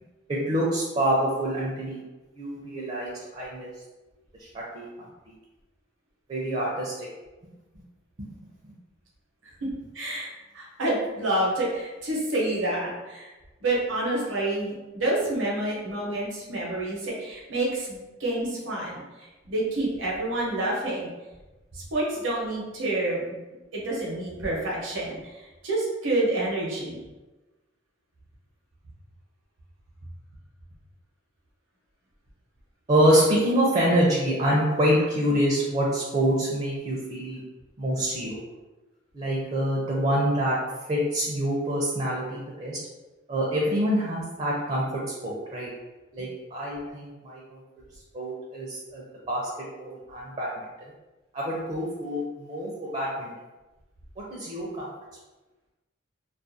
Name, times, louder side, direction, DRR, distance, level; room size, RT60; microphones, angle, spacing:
voice 1, 0.3-2.0 2.4-3.7 4.4-4.5 4.7-5.3 6.3-6.9 32.9-37.4 37.8-38.4 39.1-40.6 40.9-42.8 43.3-44.8 45.2-45.7 46.1-47.4 48.1-49.4 49.8-50.6 51.3-53.3 54.3-54.9, equal, 35° right, -4 dB, 0.4 m, -26 dB
voice 2, 9.9-13.3 13.6-19.0 19.5-21.1 21.7-23.4 23.7-25.2 25.6-27.0, right 1 dB, 75° right, -4 dB, 0.8 m, -28 dB
2.4 x 2.2 x 2.6 m, 1.1 s
head